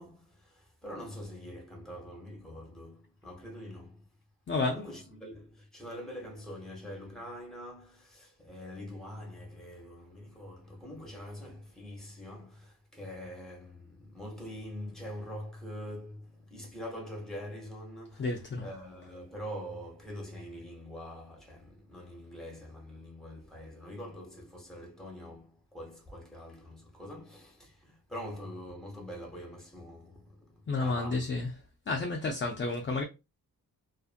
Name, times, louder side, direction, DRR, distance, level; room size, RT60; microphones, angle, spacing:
voice 1, 0.0-4.1 4.6-18.3 18.6-31.3, equal, ahead, 0.8 m, -44 dB
voice 2, 4.5-4.8 18.2-18.7 30.7-31.5 31.9-33.0, left 3 dB, 35° left, 0.4 m, -31 dB
2.5 x 2.5 x 2.4 m
wide cardioid pair, 140°, 38 cm